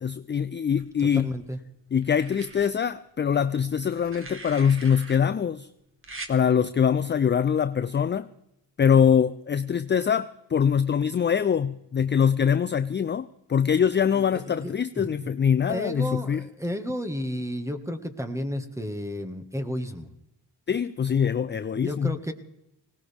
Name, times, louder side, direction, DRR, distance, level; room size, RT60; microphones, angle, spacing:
voice 1, 0.0-1.3 1.9-5.7 6.3-8.3 8.8-16.4 20.7-22.2, left 7 dB, 25° left, 13 dB, 0.4 m, -23 dB
sound 1, 0.8-1.5 2.0-2.7 3.8-5.2 6.0-6.3 7.7-7.9, right 3 dB, 30° right, 2.0 m, -42 dB
voice 2, 1.0-1.6 14.1-15.3 15.7-20.1 21.7-22.3, equal, 5° right, 8 dB, 1.6 m, -32 dB
19.5 x 18.0 x 3.5 m, 0.85 s
cardioid pair, 90°, 43 cm